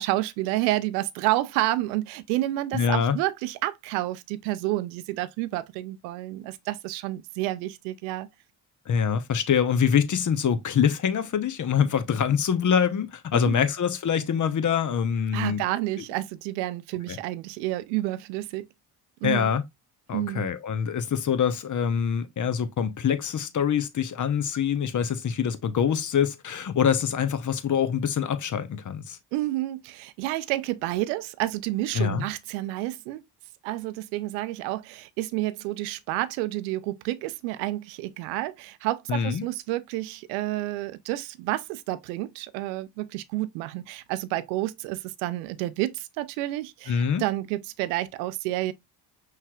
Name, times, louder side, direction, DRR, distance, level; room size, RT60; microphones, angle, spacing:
voice 1, 0.0-8.3 13.3-13.7 15.3-18.7 19.2-19.5 20.1-20.5 29.3-33.2 33.6-48.7, right 16 dB, 85° right, 0.6 m, -30 dB
voice 2, 2.7-3.2 8.9-15.6 17.1-17.2 19.2-19.6 20.1-29.2 31.9-32.2 39.1-39.4 46.9-47.2, left 7 dB, 35° left, 0.9 m, -25 dB
5.6 x 3.2 x 2.3 m
hypercardioid pair, 50°, 50 cm